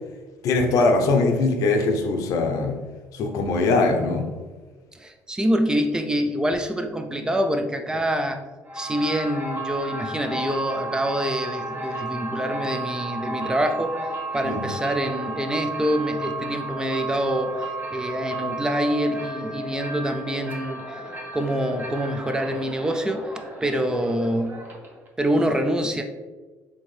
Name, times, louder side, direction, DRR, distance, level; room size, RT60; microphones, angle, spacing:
voice 1, 0.4-2.8 3.1-4.3 14.4-14.7, left 3 dB, 75° left, 4 dB, 0.7 m, -21 dB
voice 2, 4.9-8.4 8.7-14.0 14.3-17.6 17.9-20.8 21.3-23.3 23.6-24.6 25.2-26.0, equal, 10° right, 5 dB, 0.4 m, -25 dB
sound 1, 8.6-25.1, right 2 dB, 35° right, 1.0 m, -33 dB
4.3 x 3.5 x 3.2 m, 1.3 s
cardioid pair, 120°, 6 cm